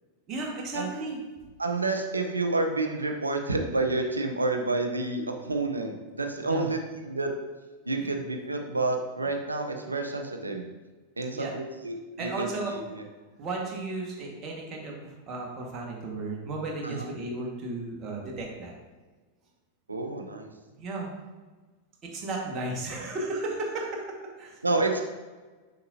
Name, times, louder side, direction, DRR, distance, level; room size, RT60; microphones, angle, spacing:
voice 1, 0.3-1.2 6.5-6.7 8.0-8.1 11.3-11.5 12.2-12.8 13.4-18.7 20.8-21.1 22.0-25.0, right 2 dB, 30° right, -1 dB, 1.6 m, -34 dB
voice 2, 1.6-7.3 7.9-10.6 11.2-13.0 16.8-17.1 19.9-20.5 24.6-25.0, right 2 dB, 80° right, 4 dB, 0.7 m, -29 dB
6.6 x 5.9 x 2.7 m, 1.3 s
figure-of-eight pair, 90°, 0 cm